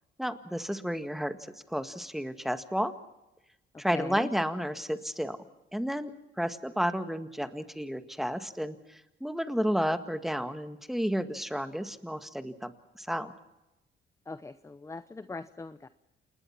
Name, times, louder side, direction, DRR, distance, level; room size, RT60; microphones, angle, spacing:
voice 1, 0.2-1.4 1.7-2.9 3.8-5.4 5.7-12.7 13.0-13.3, equal, ahead, 9 dB, 1.8 m, -32 dB
voice 2, 3.9-4.3 14.3-15.9, left 3 dB, 15° left, 13 dB, 0.8 m, -40 dB
28.5 x 20.0 x 6.0 m, 0.97 s
cardioid pair, 90°, 20 cm